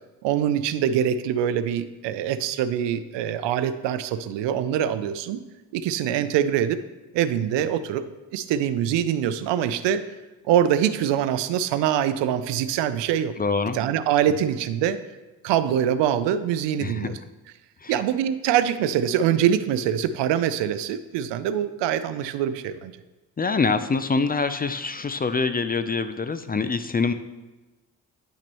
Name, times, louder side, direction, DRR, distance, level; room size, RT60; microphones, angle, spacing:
voice 1, 0.2-5.4 5.7-6.8 7.1-8.1 8.3-10.0 10.5-13.3 13.7-15.0 15.4-17.2 17.9-22.9, right 10 dB, 75° right, 13 dB, 0.6 m, -24 dB
voice 2, 13.4-13.8 16.8-17.2 17.8-17.9 23.4-27.1, left 4 dB, 20° left, 10 dB, 0.5 m, -25 dB
9.9 x 5.9 x 3.0 m, 1.1 s
supercardioid pair, 55°, 43 cm